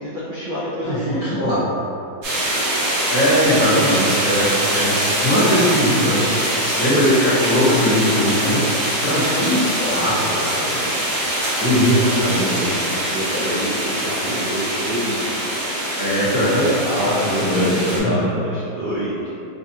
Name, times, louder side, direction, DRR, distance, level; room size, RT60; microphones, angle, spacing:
voice 1, 0.0-1.4 5.4-5.6 9.8-10.1 13.1-15.8 16.4-19.3, equal, 60° right, -10 dB, 0.5 m, -26 dB
voice 2, 0.9-1.6 3.1-4.5 4.7-5.0 5.2-6.2 6.7-8.6 9.0-10.8 11.6-12.8 16.0-18.2, equal, 50° left, -10 dB, 1.4 m, -20 dB
sound 1, 2.2-18.0, right 1 dB, 80° right, 1.8 m, -23 dB
5.2 x 2.4 x 2.7 m, 2.6 s
omnidirectional pair, 1.8 m